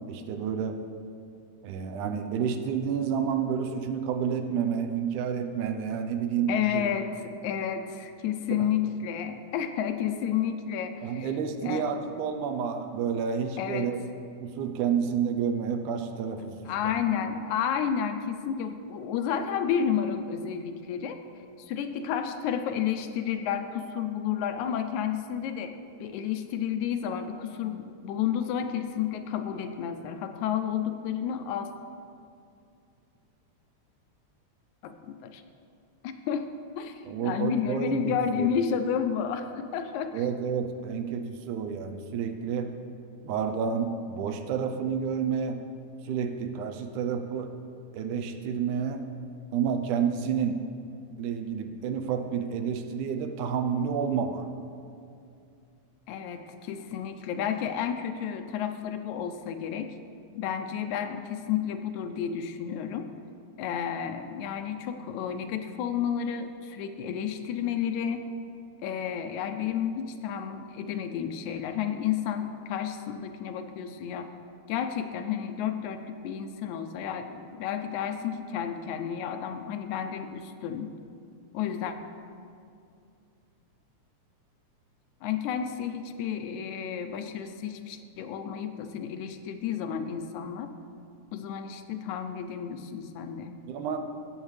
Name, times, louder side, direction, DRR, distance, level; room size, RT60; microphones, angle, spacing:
voice 1, 0.1-0.8 1.6-6.9 8.5-8.6 11.0-14.0 14.4-16.6 16.8-17.0 37.1-38.5 40.1-42.7 43.2-45.6 46.1-47.5 47.9-49.1 49.5-50.6 51.2-54.5 93.7-94.0, right 7 dB, 90° right, 7 dB, 2.2 m, -30 dB
voice 2, 6.5-11.3 11.6-11.9 13.6-13.9 16.7-21.2 21.6-25.7 26.0-31.7 34.8-35.4 36.0-36.5 36.8-40.3 56.1-60.0 60.3-63.1 63.6-68.2 68.8-74.3 74.7-80.9 81.5-82.0 85.2-90.7 91.3-93.6, left 8 dB, 80° left, 7 dB, 1.9 m, -31 dB
16.5 x 7.3 x 3.2 m, 2.4 s
omnidirectional pair, 3.4 m